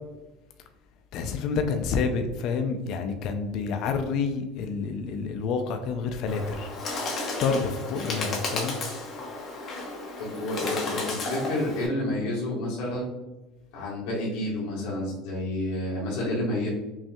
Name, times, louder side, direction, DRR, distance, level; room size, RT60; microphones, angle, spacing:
voice 1, 1.1-6.7 7.4-8.8, left 5 dB, 55° left, 6 dB, 0.4 m, -28 dB
Bird, 6.3-11.9, left 2 dB, 40° left, 1.1 m, -33 dB
voice 2, 10.2-13.1 13.7-16.7, left 1 dB, 80° left, -7 dB, 1.3 m, -29 dB
5.3 x 2.6 x 2.3 m, 1.1 s
cardioid pair, 145°, 0 cm